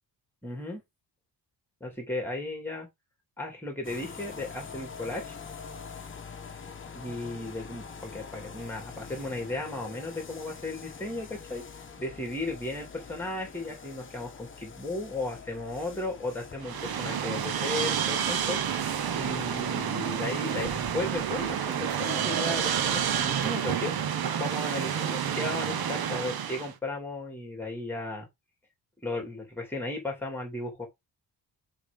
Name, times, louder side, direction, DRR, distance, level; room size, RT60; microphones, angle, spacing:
voice 1, 0.4-0.8 1.8-2.9 3.4-5.4 6.9-11.6 12.0-18.6 19.2-23.9 24.3-28.3 29.0-30.9, left 2 dB, 5° left, 2.5 m, -35 dB
sound 1, 3.8-23.5, left 5 dB, 25° left, 1.1 m, -46 dB
sound 2, 16.6-26.7, right 8 dB, 55° right, 1.0 m, -29 dB
7.1 x 3.6 x 5.2 m
wide cardioid pair, 170°, 43 cm